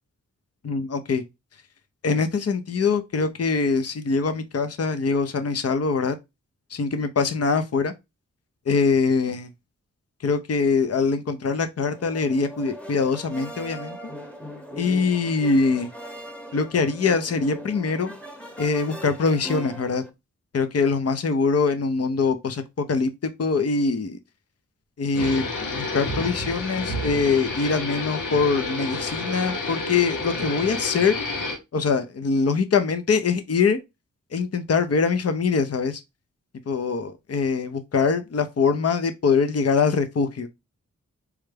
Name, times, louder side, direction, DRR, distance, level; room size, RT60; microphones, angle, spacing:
voice 1, 0.6-1.2 2.0-6.2 6.7-7.9 8.7-9.5 10.2-14.1 14.8-15.9 16.5-18.1 18.6-20.0 20.5-24.2 25.0-25.5 25.7-31.2 31.7-33.8 34.3-36.0 36.7-40.5, left 4 dB, 50° left, 0.7 m, -23 dB
sound 1, 11.8-20.1, equal, 5° left, 0.9 m, -39 dB
sound 2, 25.1-31.6, left 2 dB, 90° left, 1.0 m, -30 dB
4.8 x 2.2 x 3.3 m
cardioid pair, 45°, 31 cm